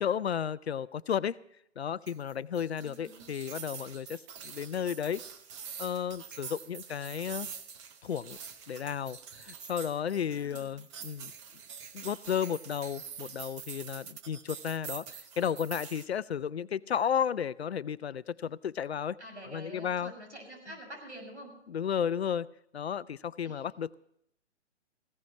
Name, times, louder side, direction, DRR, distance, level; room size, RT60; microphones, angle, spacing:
voice 1, 0.0-1.4 1.8-5.2 5.8-7.5 8.0-8.4 8.7-11.3 11.9-19.2 19.5-20.1 21.7-22.5 22.7-23.9, left 8 dB, 60° left, 17 dB, 0.6 m, -33 dB
sound 1, 2.1-16.1, right 7 dB, 25° right, 1.0 m, -45 dB
voice 2, 2.8-3.3 10.3-10.8 19.2-21.5 23.4-23.7, right 1 dB, 75° right, 3 dB, 6.6 m, -47 dB
18.5 x 16.5 x 3.0 m, 0.72 s
figure-of-eight pair, 125°, 35 cm